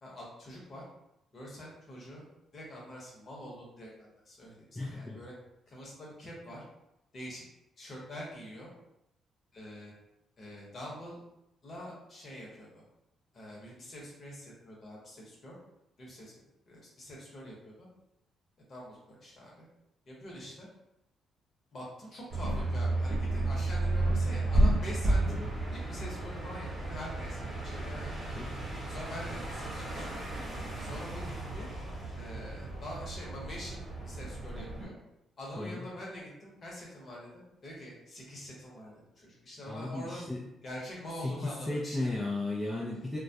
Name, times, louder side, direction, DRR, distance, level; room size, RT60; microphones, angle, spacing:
voice 1, 0.0-0.8 1.3-2.3 2.5-5.3 5.7-6.6 7.1-7.4 7.8-8.7 9.5-9.9 10.4-11.2 11.6-12.8 13.3-15.6 16.0-16.3 16.7-17.9 18.7-19.6 20.1-20.7 21.7-25.4 25.7-28.4 28.9-30.3 30.8-31.7 32.2-34.9 35.4-40.2 40.6-42.1, equal, 45° left, -4 dB, 0.9 m, -45 dB
voice 2, 4.7-5.2 25.3-25.5 28.4-28.6 35.6-35.9 39.7-40.4 41.2-43.2, left 2 dB, 20° left, -4 dB, 0.4 m, -35 dB
sound 1, 22.3-34.8, right 1 dB, 35° right, 0.9 m, -32 dB
2.2 x 2.1 x 2.7 m, 0.86 s
cardioid pair, 90°, 0 cm